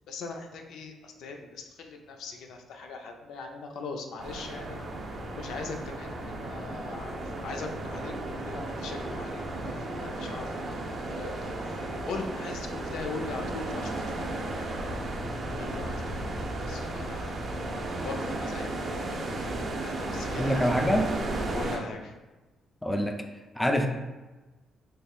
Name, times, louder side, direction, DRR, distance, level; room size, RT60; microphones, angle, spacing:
voice 1, 0.1-4.8 5.3-7.2 7.4-11.8 12.1-14.4 15.6-17.3 18.0-19.4 19.8-20.7 21.5-22.2, left 4 dB, 80° left, 4 dB, 0.4 m, -41 dB
sound 1, 4.2-21.8, right 2 dB, 50° right, 0.6 m, -34 dB
voice 2, 20.4-21.1 22.8-23.2 23.6-23.9, equal, 10° left, 5 dB, 0.3 m, -25 dB
3.4 x 3.2 x 2.3 m, 1.2 s
cardioid pair, 90°, 0 cm